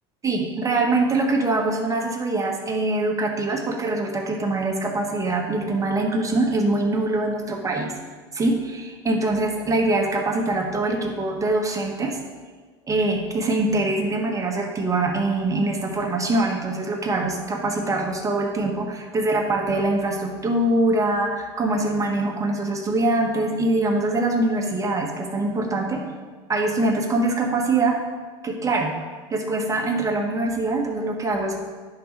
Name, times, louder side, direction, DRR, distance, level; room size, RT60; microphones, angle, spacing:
voice 1, 0.2-8.0 8.3-12.2 12.9-26.0 26.5-28.0 28.4-28.9 29.3-31.6, right 2 dB, 20° right, 1 dB, 1.5 m, -23 dB
10.0 x 4.0 x 5.3 m, 1.5 s
supercardioid pair, 95°, 15 cm